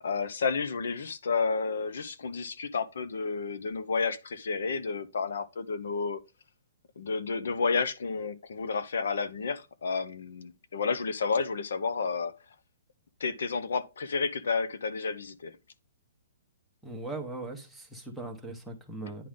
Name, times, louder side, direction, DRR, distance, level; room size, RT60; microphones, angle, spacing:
voice 1, 0.0-6.2 7.0-12.3 13.2-15.5, left 5 dB, 80° left, 0.9 m, -31 dB
voice 2, 16.8-19.3, right 2 dB, ahead, 1.0 m, -39 dB
10.0 x 3.9 x 3.7 m
hypercardioid pair, 175°, 0 cm